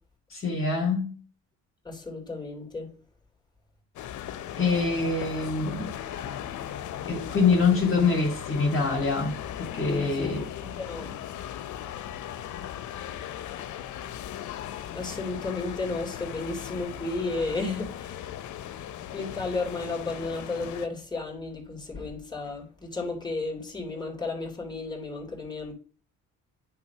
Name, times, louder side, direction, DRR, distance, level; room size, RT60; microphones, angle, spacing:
voice 1, 0.3-1.1 4.6-5.9 7.1-10.4, left 4 dB, 45° left, 2.3 m, -25 dB
voice 2, 1.8-2.9 10.0-11.2 14.9-18.3 19.1-25.7, left 3 dB, 15° left, 2.9 m, -33 dB
sound 1, 4.0-20.9, left 10 dB, 75° left, 0.7 m, -38 dB
9.5 x 3.3 x 5.7 m
cardioid pair, 90°, 30 cm